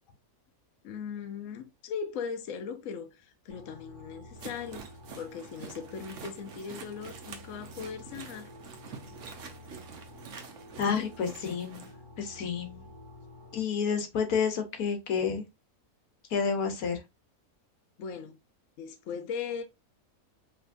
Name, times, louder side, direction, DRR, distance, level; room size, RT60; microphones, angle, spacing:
voice 1, 0.8-4.9 5.2-8.5 18.0-18.4 18.8-19.6, left 6 dB, 70° left, 1.0 m, -39 dB
sound 1, 3.5-13.6, left 1 dB, 20° right, 1.6 m, -50 dB
sound 2, 4.4-11.9, right 6 dB, 60° right, 1.1 m, -47 dB
voice 2, 10.8-11.9 12.2-12.9 13.5-15.4 16.3-17.0, left 6 dB, 85° left, 1.4 m, -30 dB
5.0 x 3.2 x 2.5 m
omnidirectional pair, 1.5 m